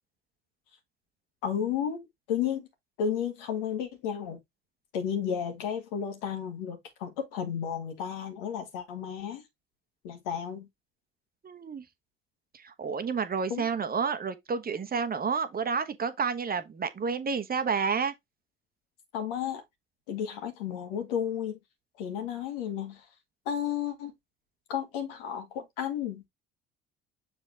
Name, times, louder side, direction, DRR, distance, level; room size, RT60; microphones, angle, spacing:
voice 1, 1.4-2.7 3.0-4.4 4.9-9.4 10.0-10.7 13.5-13.7 19.1-19.6 20.1-21.6 22.0-23.1 23.5-24.1 24.7-26.3, left 8 dB, 70° left, 1.9 m, -33 dB
voice 2, 11.4-11.8 12.5-18.1, right 5 dB, 30° right, 1.1 m, -30 dB
6.9 x 4.3 x 3.3 m
hypercardioid pair, 55°, 30 cm